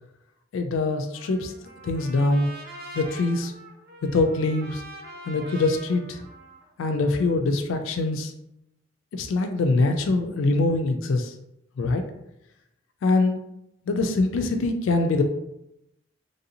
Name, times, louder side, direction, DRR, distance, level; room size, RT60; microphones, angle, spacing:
voice 1, 0.5-1.5 1.8-2.5 2.9-3.5 4.0-4.8 5.3-6.2 6.8-8.3 9.1-11.3 11.8-12.0 13.0-13.4 13.9-15.2, left 2 dB, 75° left, 5 dB, 0.3 m, -23 dB
Trumpet, 1.1-7.4, right 2 dB, 50° right, 0.6 m, -44 dB
3.1 x 2.6 x 2.7 m, 0.85 s
head